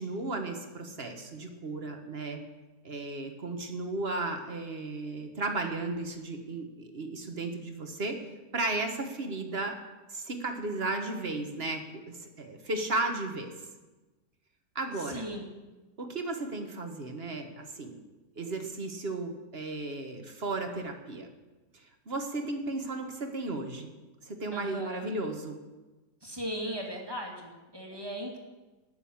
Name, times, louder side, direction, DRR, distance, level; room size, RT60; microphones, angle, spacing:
voice 1, 0.0-2.4 2.8-8.2 8.5-9.8 10.1-13.5 14.7-15.2 16.0-17.9 18.4-21.3 21.7-23.9 24.2-25.6, right 2 dB, 40° right, 5 dB, 1.5 m, -34 dB
voice 2, 15.0-15.5 24.5-25.1 26.2-28.4, equal, 15° right, 0 dB, 2.2 m, -37 dB
19.0 x 6.9 x 7.2 m, 1.2 s
omnidirectional pair, 1.7 m